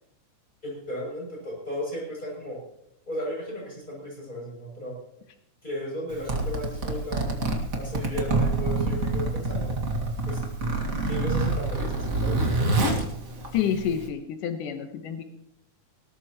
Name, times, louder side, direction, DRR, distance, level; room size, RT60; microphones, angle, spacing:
voice 1, 0.6-2.6 3.1-5.0 5.6-9.7 10.3-10.4 11.1-12.5, equal, 15° left, -2 dB, 7.9 m, -35 dB
Zipper (clothing), 6.1-14.1, right 2 dB, 30° right, 2.0 m, -27 dB
voice 2, 13.5-15.2, left 8 dB, 90° left, 6 dB, 2.7 m, -28 dB
20.0 x 19.0 x 3.1 m, 0.77 s
omnidirectional pair, 3.6 m